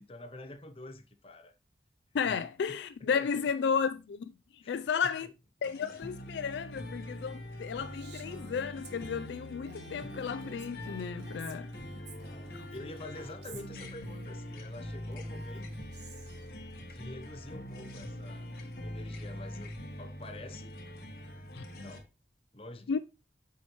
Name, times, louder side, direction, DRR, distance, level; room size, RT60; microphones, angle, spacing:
voice 1, 0.0-1.5 2.3-2.4 3.1-3.4 4.6-4.9 11.9-15.7 16.8-18.5 18.8-20.7 21.7-22.1 22.5-23.0, left 2 dB, 30° left, 0.7 m, -47 dB
voice 2, 2.1-5.3 5.6-11.7 21.5-21.6 22.9-23.0, left 6 dB, 75° left, 0.3 m, -33 dB
sound 1, 5.6-22.0, left 1 dB, 55° left, 1.1 m, -43 dB
Female speech woman speaking, 7.9-14.3 15.1-16.5, right 2 dB, 70° right, 1.1 m, -51 dB
7.0 x 4.8 x 3.0 m
head